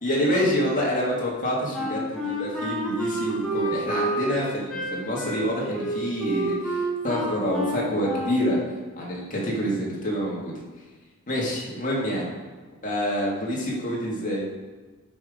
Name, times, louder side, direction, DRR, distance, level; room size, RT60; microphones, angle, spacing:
voice 1, 0.0-8.6 9.0-10.5 11.3-12.3 12.8-14.4, equal, 40° left, -4 dB, 2.0 m, -27 dB
Wind instrument woodwind instrument, 1.7-8.5, right 1 dB, 5° left, 1.4 m, -29 dB
6.2 x 5.2 x 5.1 m, 1.3 s
head